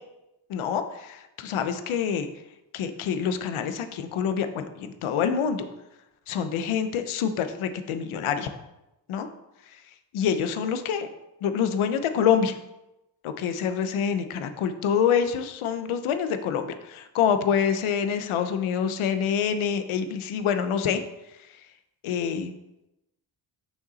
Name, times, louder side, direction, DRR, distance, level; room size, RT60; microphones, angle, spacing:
voice 1, 0.5-2.3 2.7-5.7 6.3-8.5 9.1-9.3 10.1-11.1 11.4-12.5 13.2-21.0 22.0-22.5, left 7 dB, 85° left, 9 dB, 0.8 m, -26 dB
6.5 x 5.9 x 4.0 m, 0.93 s
cardioid pair, 120°, 48 cm